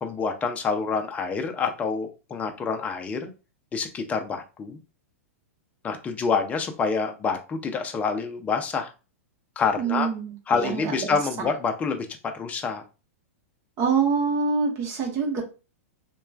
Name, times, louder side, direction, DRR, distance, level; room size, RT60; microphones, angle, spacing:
voice 1, 0.0-3.3 3.7-4.8 5.8-8.9 9.6-10.1 10.5-12.1 12.3-12.8, left 5 dB, 20° left, 5 dB, 0.5 m, -27 dB
voice 2, 9.8-11.1 13.8-15.4, right 5 dB, 35° right, 1 dB, 1.0 m, -25 dB
3.0 x 2.2 x 2.3 m, 0.31 s
hypercardioid pair, 120°, 8 cm